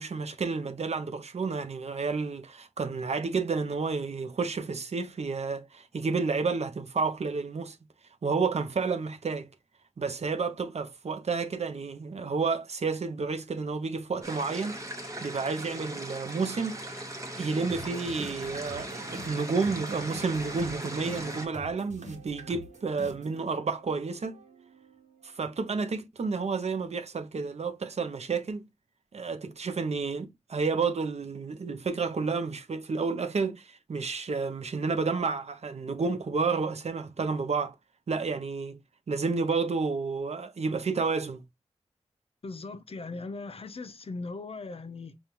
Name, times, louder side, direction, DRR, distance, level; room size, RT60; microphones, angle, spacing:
voice 1, 0.0-7.8 8.2-9.5 10.0-14.8 15.2-17.0 17.4-24.4 25.2-28.6 29.1-37.7 38.1-38.8 39.1-41.4, right 4 dB, 65° right, 0.6 m, -30 dB
sound 1, 14.2-21.5, right 1 dB, 25° right, 0.9 m, -39 dB
sound 2, 17.7-25.7, right 2 dB, 80° right, 1.1 m, -46 dB
voice 2, 42.4-45.2, left 3 dB, 55° left, 0.6 m, -39 dB
5.2 x 2.4 x 2.9 m
wide cardioid pair, 75°, 12 cm